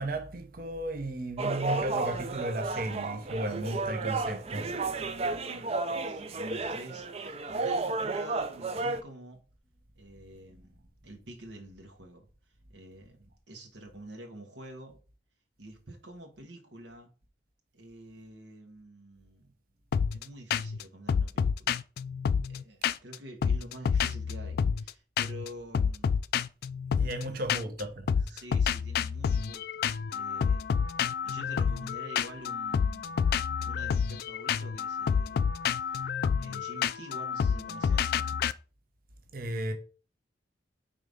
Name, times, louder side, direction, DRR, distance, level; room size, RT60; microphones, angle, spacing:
voice 1, 0.0-4.7 27.0-27.9 28.2-28.4 39.3-39.7, right 1 dB, 50° right, 0.9 m, -34 dB
sound 1, 1.4-9.0, right 3 dB, 35° right, 0.5 m, -32 dB
voice 2, 4.8-9.4 10.0-12.3 12.7-15.0 15.6-17.1 17.7-19.5 20.1-21.8 22.5-26.2 27.1-27.6 28.2-30.7 31.2-33.3 33.6-35.5 35.8-38.2, right 1 dB, 75° right, 1.2 m, -48 dB
sound 2, 19.9-20.2 20.5-20.8 21.1-23.1 23.4-24.9 25.2-25.5 25.7-27.8 28.1-38.5, left 6 dB, 55° left, 0.3 m, -29 dB
4.9 x 3.7 x 5.2 m
head